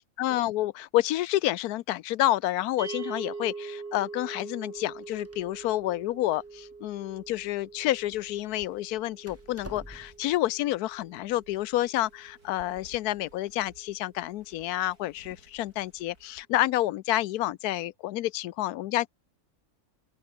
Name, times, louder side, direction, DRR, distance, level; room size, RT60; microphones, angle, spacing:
voice 1, 0.0-19.1, left 15 dB, 85° left, 1.1 m, -29 dB
sound 1, 2.8-13.1, right 4 dB, 40° right, 1.9 m, -44 dB
Door, 4.8-10.4, equal, 10° right, 6.1 m, -51 dB
sound 2, 8.1-16.5, right 2 dB, 80° right, 8.6 m, -58 dB
open air
omnidirectional pair, 1.6 m